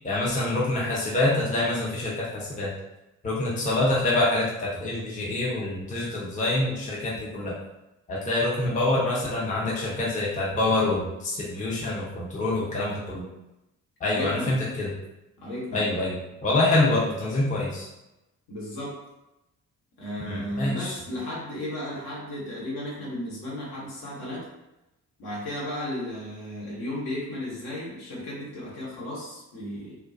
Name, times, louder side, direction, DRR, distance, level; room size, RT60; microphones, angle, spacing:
voice 1, 0.0-2.7 3.2-7.6 8.1-13.3 14.0-14.9 15.7-17.9 20.2-20.9, left 2 dB, 20° left, -5 dB, 0.7 m, -26 dB
voice 2, 14.1-14.6 15.4-15.9 18.5-19.0 20.0-24.5 25.2-30.0, left 1 dB, 55° left, -5 dB, 1.0 m, -34 dB
2.2 x 2.2 x 2.6 m, 0.94 s
figure-of-eight pair, 40°, 42 cm